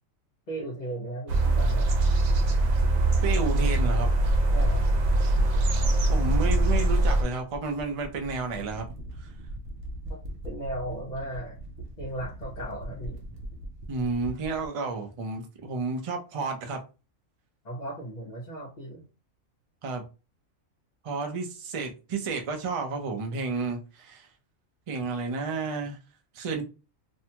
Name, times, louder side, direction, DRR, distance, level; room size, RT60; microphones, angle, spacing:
voice 1, 0.5-1.9 4.5-4.8 10.1-11.6 12.0-13.2 17.6-19.0, right 1 dB, 40° left, 0.7 m, -36 dB
sound 1, 1.3-7.2, right 2 dB, 90° right, 1.1 m, -22 dB
voice 2, 3.2-4.1 6.1-8.9 9.2-9.3 13.9-16.8 19.8-20.0 21.0-24.3 24.9-26.0 26.3-26.6, right 4 dB, 55° right, 0.3 m, -31 dB
sound 2, 6.9-14.7, right 1 dB, 70° right, 0.9 m, -41 dB
2.7 x 2.2 x 2.8 m
omnidirectional pair, 1.4 m